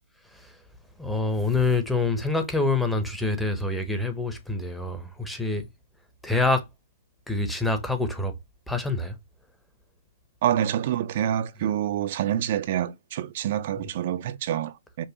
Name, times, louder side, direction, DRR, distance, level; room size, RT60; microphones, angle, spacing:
voice 1, 1.0-5.7 6.2-6.6 7.3-8.3 8.7-9.2 13.8-13.9, left 3 dB, 5° left, 0.7 m, -26 dB
voice 2, 10.4-15.1, right 11 dB, 45° right, 0.4 m, -27 dB
5.3 x 2.1 x 2.8 m
hypercardioid pair, 140°, 0 cm